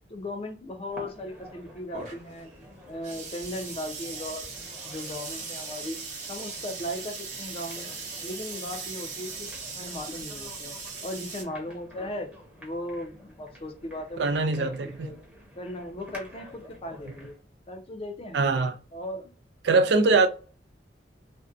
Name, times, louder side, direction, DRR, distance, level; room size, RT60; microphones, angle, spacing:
voice 1, 0.1-2.5 2.9-6.0 6.3-7.9 8.2-9.5 9.8-10.8 11.0-12.3 12.6-14.3 14.6-15.2 15.6-17.4 17.7-18.4 18.9-19.3, left 1 dB, 35° left, 0.4 m, -37 dB
sound 1, 0.9-17.4, equal, 10° right, 0.7 m, -50 dB
sound 2, 1.9-11.4, right 4 dB, 45° right, 0.8 m, -39 dB
voice 2, 14.2-15.1 18.3-18.7 19.6-20.3, right 3 dB, 70° right, 0.4 m, -22 dB
2.6 x 2.1 x 2.4 m
head